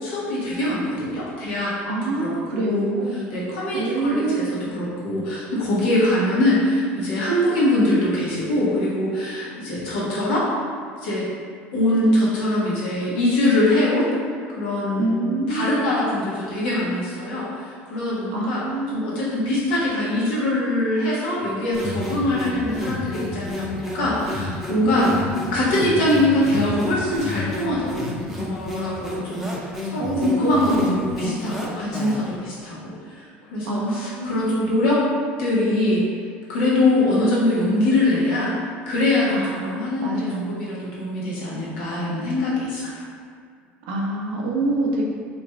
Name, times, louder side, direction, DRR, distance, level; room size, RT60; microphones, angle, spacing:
voice 1, 0.0-1.7 2.2-4.4 4.7-10.5 11.0-11.2 11.7-14.1 14.6-18.6 18.9-25.1 25.5-27.9 28.3-29.5 29.8-32.8 33.5-35.0 35.4-36.0 36.5-38.5 38.9-43.0, left 1 dB, 75° left, -7 dB, 1.1 m, -23 dB
voice 2, 1.8-3.2 3.7-4.5 14.9-15.9 18.3-19.3 24.8-25.4 30.0-31.3 33.7-34.5 39.3-40.6 43.8-45.0, right 2 dB, 75° right, -2 dB, 0.7 m, -26 dB
sound 1, 21.7-32.4, left 2 dB, ahead, 0.7 m, -31 dB
3.1 x 2.5 x 3.4 m, 2.1 s
hypercardioid pair, 75°, 6 cm